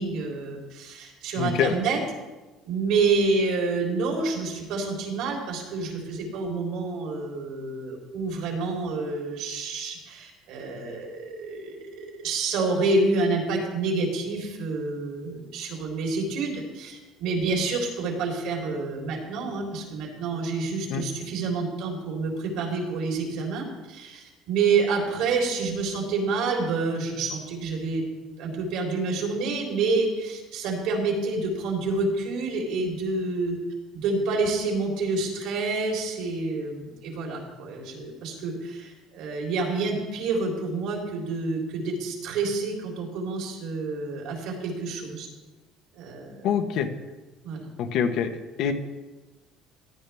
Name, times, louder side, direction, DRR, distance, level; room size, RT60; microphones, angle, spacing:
voice 1, 0.0-2.0 2.6-28.0 28.4-33.6 33.9-45.3 45.9-46.5 47.4-47.7, right 3 dB, 75° right, -1 dB, 3.7 m, -28 dB
voice 2, 1.4-1.7 20.9-21.0 46.4-46.9 47.8-48.3 48.6-48.7, left 8 dB, 65° left, 6 dB, 1.2 m, -24 dB
16.0 x 10.5 x 3.5 m, 1.2 s
cardioid pair, 130°, 0 cm